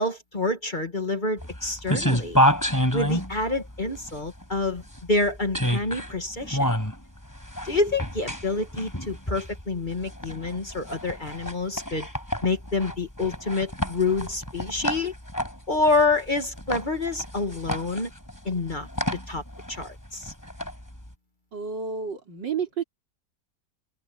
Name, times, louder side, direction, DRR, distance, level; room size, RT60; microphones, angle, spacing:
voice 1, 0.0-2.4 2.9-4.8 5.1-6.7 7.6-12.1 12.4-15.1 15.7-18.1 18.5-18.9 19.3-19.4 19.7-20.3, left 3 dB, 25° left, 2.1 m, -27 dB
sound 1, 1.4-21.1, equal, 10° left, 5.3 m, -29 dB
voice 2, 21.5-22.8, right 6 dB, 85° right, 3.8 m, -30 dB
open air
omnidirectional pair, 1.9 m